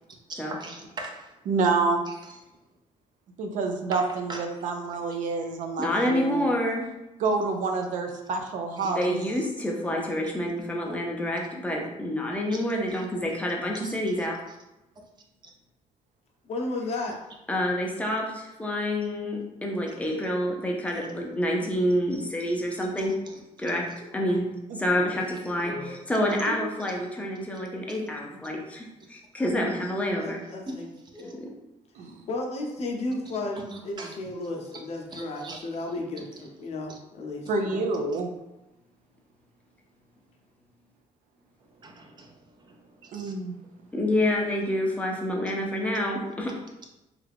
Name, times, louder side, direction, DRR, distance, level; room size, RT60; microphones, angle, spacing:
voice 1, 0.3-1.3 2.1-2.3 3.9-4.5 5.1-5.3 8.8-9.2 12.5-12.7 13.7-14.0 20.9-21.1 23.0-23.4 23.7-23.8 25.3-25.4 25.6-26.0 26.4-27.0 27.9-28.0 30.2-30.3 30.7-30.8 31.1-31.3 33.7-34.1 35.1-35.7 36.9-37.0 41.6-43.3, right 2 dB, 35° right, 1 dB, 0.6 m, -41 dB
voice 2, 1.5-2.0 3.4-6.5 7.2-9.3 24.7-24.8 32.0-32.2 37.5-38.3 43.1-43.6, right 4 dB, 80° right, 4 dB, 0.5 m, -28 dB
voice 3, 5.8-6.9 8.8-14.3 17.5-23.1 23.6-23.8 24.1-24.5 24.8-30.4 31.2-31.5 43.9-46.5, left 1 dB, 10° left, -1 dB, 0.6 m, -28 dB
voice 4, 16.4-17.2 24.9-25.2 30.2-30.9 32.0-33.6 33.8-37.9, left 2 dB, 55° left, 1 dB, 0.6 m, -34 dB
3.3 x 2.4 x 3.4 m, 0.96 s
cardioid pair, 140°, 13 cm